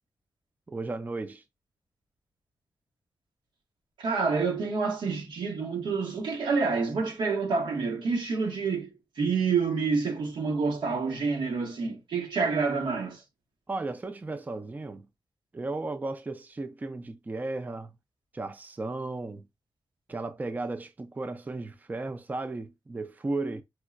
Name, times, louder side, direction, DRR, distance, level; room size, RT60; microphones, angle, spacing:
voice 1, 0.7-1.4 12.4-12.5 13.7-15.1 15.5-17.9 18.3-19.4 20.1-23.6, right 2 dB, 20° right, 0.4 m, -35 dB
voice 2, 4.0-13.2, right 4 dB, 80° right, 0.9 m, -28 dB
4.4 x 2.0 x 2.4 m
cardioid pair, 75°, 8 cm